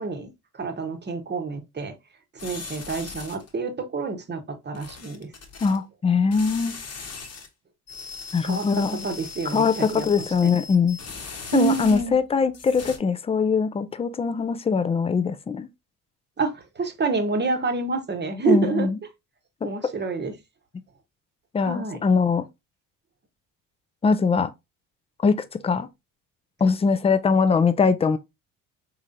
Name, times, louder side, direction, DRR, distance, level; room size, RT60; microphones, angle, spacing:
voice 1, 0.0-1.9 2.4-5.3 8.4-10.5 11.5-12.2 16.4-18.9 19.6-20.3 21.6-22.0, right 4 dB, 25° right, 1.0 m, -28 dB
sound 1, 2.4-3.5 4.7-5.8 6.3-7.5 7.9-12.2 12.5-13.0, left 4 dB, 40° left, 1.1 m, -39 dB
voice 2, 5.6-6.8 8.3-9.1 9.5-11.0 11.5-15.7 18.5-19.0 19.6-19.7 21.5-22.4 24.0-24.5 25.2-25.9 26.6-28.2, left 5 dB, 15° left, 0.4 m, -22 dB
3.7 x 3.1 x 2.6 m
hypercardioid pair, 65°, 41 cm